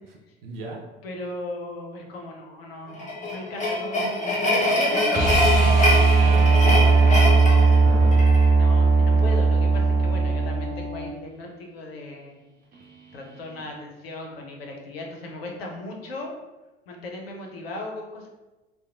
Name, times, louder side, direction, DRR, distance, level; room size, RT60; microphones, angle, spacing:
voice 1, 0.4-0.8 6.1-8.3, right 3 dB, 75° right, 0 dB, 0.5 m, -37 dB
voice 2, 1.0-3.0 3.3-5.4 8.6-12.4 13.1-16.3 16.9-18.3, left 2 dB, 80° left, 1 dB, 0.6 m, -36 dB
sound 1, 2.9-8.5, left 1 dB, 25° left, 0.8 m, -24 dB
sound 2, 5.1-11.1 13.6-13.7, right 4 dB, 30° right, 0.6 m, -18 dB
2.8 x 2.1 x 2.4 m, 1.1 s
figure-of-eight pair, 65°, 30 cm